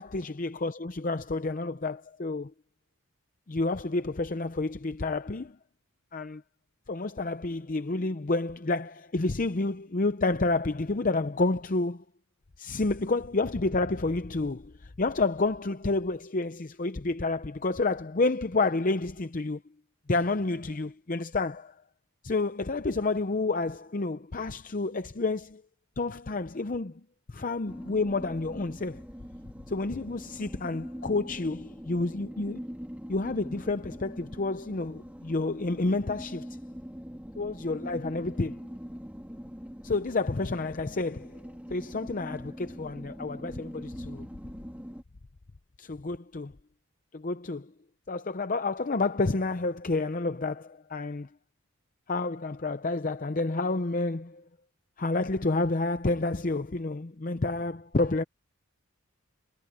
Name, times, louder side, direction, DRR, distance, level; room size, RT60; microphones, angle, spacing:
voice 1, 0.0-2.5 3.5-5.6 6.1-6.4 6.9-12.0 12.6-19.6 20.1-21.7 22.2-25.6 26.0-26.9 27.3-29.0 29.7-32.6 33.1-36.5 37.4-38.6 39.8-41.4 41.7-44.3 45.8-46.5 47.1-47.7 48.1-51.3 52.1-54.4 55.0-58.2, left 3 dB, 35° left, 0.6 m, -29 dB
sound 1, 27.6-45.0, equal, 5° right, 2.2 m, -43 dB
head